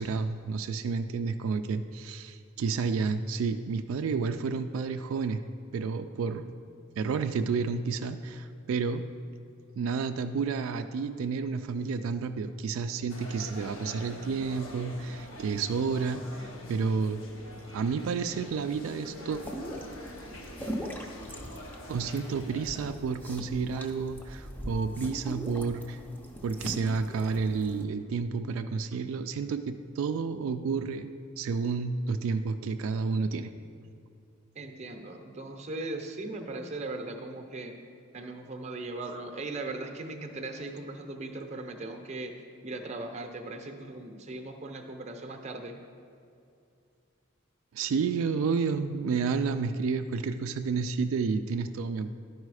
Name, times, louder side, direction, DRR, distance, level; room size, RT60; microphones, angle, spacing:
voice 1, 0.0-5.4 5.7-6.5 7.0-9.1 9.8-17.2 17.7-19.4 21.9-26.0 26.4-31.1 31.4-33.5 47.7-52.1, right 5 dB, 80° right, 8 dB, 0.3 m, -30 dB
sound 1, 13.1-22.9, left 1 dB, 80° left, 1.0 m, -45 dB
sound 2, 19.3-27.8, equal, 10° left, 0.5 m, -41 dB
voice 2, 34.6-37.8 38.1-42.3 42.6-45.8, right 2 dB, 35° right, 5 dB, 0.6 m, -38 dB
11.5 x 4.9 x 4.8 m, 2.5 s
head